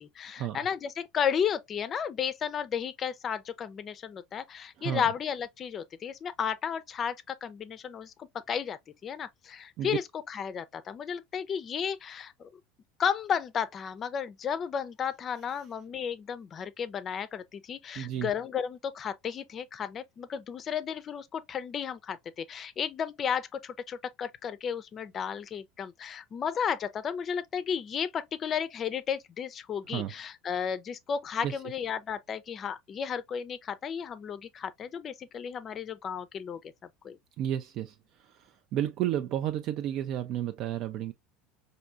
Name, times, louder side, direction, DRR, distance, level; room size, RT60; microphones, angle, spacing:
voice 1, 0.0-12.5 13.0-36.6 37.0-37.2, left 7 dB, 35° left, 0.4 m, -33 dB
voice 2, 18.0-18.3 29.9-30.1 31.4-31.5 37.4-37.9 38.7-41.1, right 11 dB, 55° right, 0.3 m, -31 dB
4.3 x 2.6 x 2.4 m
supercardioid pair, 105°, 0 cm